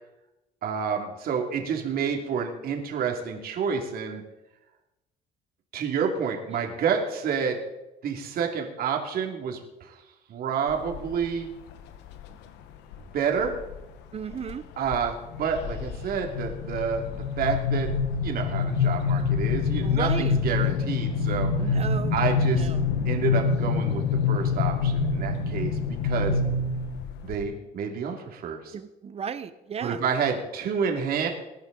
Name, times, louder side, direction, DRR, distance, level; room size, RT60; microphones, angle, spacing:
voice 1, 0.6-4.2 5.7-7.6 8.0-10.0 10.3-11.5 13.1-13.6 14.8-17.9 18.2-21.8 22.1-22.7 23.0-26.4 27.2-28.7 29.8-31.3, right 6 dB, 65° right, 2 dB, 2.6 m, -29 dB
sound 1, 10.7-11.2 11.7-12.3 12.9-13.8 14.2-14.5 14.9-27.4, left 5 dB, 90° left, 1.3 m, -26 dB
voice 2, 14.1-14.6 19.8-20.4 21.6-22.2 22.5-22.8 28.7-30.0, right 7 dB, 35° right, 12 dB, 1.1 m, -34 dB
21.0 x 10.5 x 4.0 m, 0.98 s
cardioid pair, 110°, 17 cm